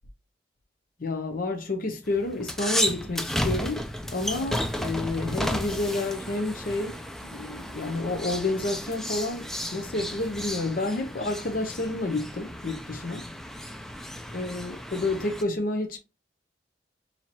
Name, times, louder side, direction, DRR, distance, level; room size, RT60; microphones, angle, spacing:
voice 1, 1.0-9.4 9.7-13.3 14.3-16.0, left 2 dB, 50° left, 0.7 m, -30 dB
sound 1, 2.1-15.4, equal, 5° left, 0.3 m, -33 dB
4.3 x 2.8 x 2.9 m
head